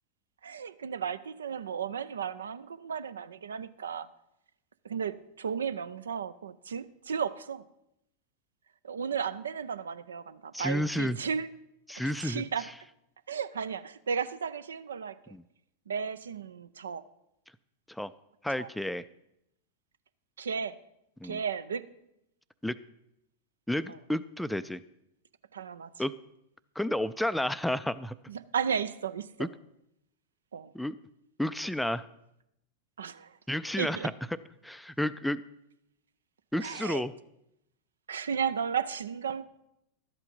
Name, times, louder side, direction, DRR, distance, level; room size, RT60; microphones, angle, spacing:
voice 1, 0.4-4.1 4.8-7.6 8.8-11.5 12.0-12.7 13.3-15.2 15.9-17.1 18.6-18.7 20.4-20.8 21.2-21.9 25.5-25.9 28.3-29.5 30.5-30.7 33.0-33.3 33.8-34.1 36.6-37.0 38.1-39.4, right 7 dB, 70° right, 16 dB, 0.4 m, -34 dB
voice 2, 10.5-11.2 11.9-12.7 15.3-15.4 17.9-18.1 18.4-19.0 21.2-21.4 22.6-22.8 23.7-24.8 26.0-26.1 26.8-28.2 29.4-29.5 30.7-31.0 31.4-32.1 33.5-34.1 34.6-35.4 36.5-37.1, left 1 dB, 5° left, 15 dB, 0.3 m, -31 dB
12.0 x 8.2 x 5.3 m, 0.83 s
figure-of-eight pair, 90°, 0 cm